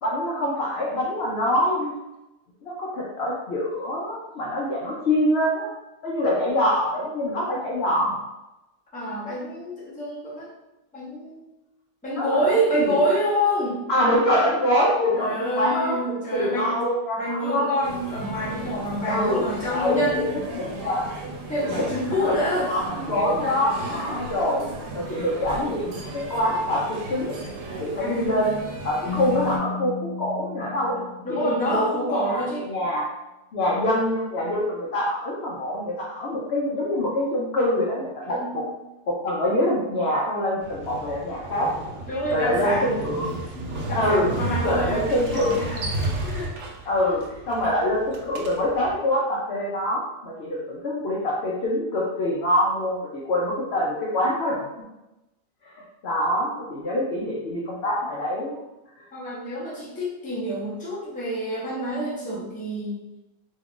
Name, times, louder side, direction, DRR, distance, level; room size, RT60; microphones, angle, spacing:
voice 1, 0.0-1.9 2.6-5.7 6.0-8.2 12.1-12.5 12.8-13.1 13.9-17.7 19.1-20.3 20.5-21.1 21.6-21.8 22.2-24.6 24.9-27.4 27.8-28.6 28.8-31.0 31.4-33.1 33.5-38.6 39.1-41.7 42.3-43.4 43.9-44.3 44.6-45.7 46.9-47.2 47.5-54.7 55.6-58.6, left 1 dB, 65° left, -4 dB, 0.6 m, -25 dB
voice 2, 8.9-10.5 10.9-11.4 12.0-13.9 15.1-16.8 17.2-20.3 21.5-22.7 23.1-23.2 23.8-24.2 25.0-25.2 28.0-28.3 30.9-32.7 33.7-33.9 38.2-38.7 41.1-41.2 42.1-46.6 47.0-47.1 59.1-63.0, equal, 10° left, -7 dB, 0.5 m, -28 dB
sound 1, 17.8-29.6, right 3 dB, 85° right, 1.2 m, -36 dB
Keyboard (musical), 29.0-31.8, left 6 dB, 90° left, 1.2 m, -34 dB
Motorcycle, 40.6-49.0, right 2 dB, 70° right, 0.7 m, -33 dB
3.0 x 2.4 x 3.6 m, 0.97 s
omnidirectional pair, 1.7 m